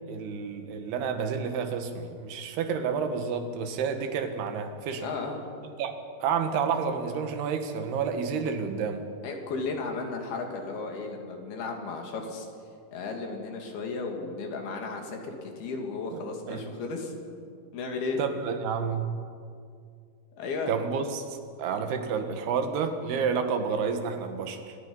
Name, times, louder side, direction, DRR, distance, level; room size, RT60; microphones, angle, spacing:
voice 1, 0.1-5.1 5.8-5.9 6.2-9.0 16.1-16.2 16.5-16.6 18.2-19.1 20.7-24.8, right 6 dB, 90° right, 7 dB, 3.5 m, -30 dB
voice 2, 5.0-5.4 9.2-12.5 12.9-17.1 17.7-18.2 20.4-20.7, left 4 dB, 75° left, 2 dB, 4.4 m, -34 dB
26.5 x 19.5 x 5.5 m, 2.3 s
omnidirectional pair, 4.5 m